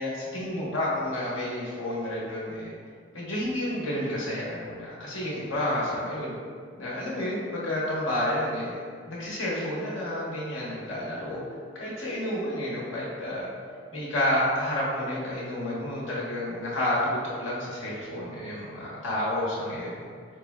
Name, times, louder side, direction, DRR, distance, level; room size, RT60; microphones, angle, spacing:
voice 1, 0.0-2.7 3.1-6.3 6.8-8.8 9.1-11.4 11.8-13.5 13.9-19.9, left 1 dB, 75° left, -6 dB, 1.1 m, -30 dB
4.8 x 3.3 x 2.3 m, 2.1 s
head